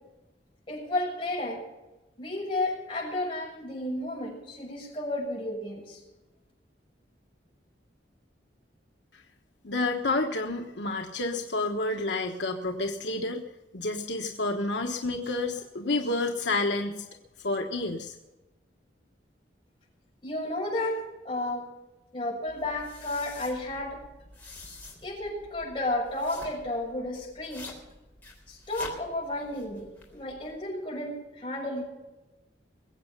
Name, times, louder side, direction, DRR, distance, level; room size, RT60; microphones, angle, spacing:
voice 1, 0.7-1.6 2.2-6.0 20.2-21.0 21.2-21.6 22.1-24.0 25.0-27.7 28.5-31.8, left 1 dB, 30° left, -3 dB, 6.8 m, -32 dB
voice 2, 9.6-13.4 13.7-17.0 17.4-18.1, left 2 dB, 80° left, 2 dB, 1.2 m, -29 dB
sound 1, 22.5-30.6, left 2 dB, 10° left, 3.6 m, -48 dB
22.0 x 8.3 x 6.7 m, 1.1 s
head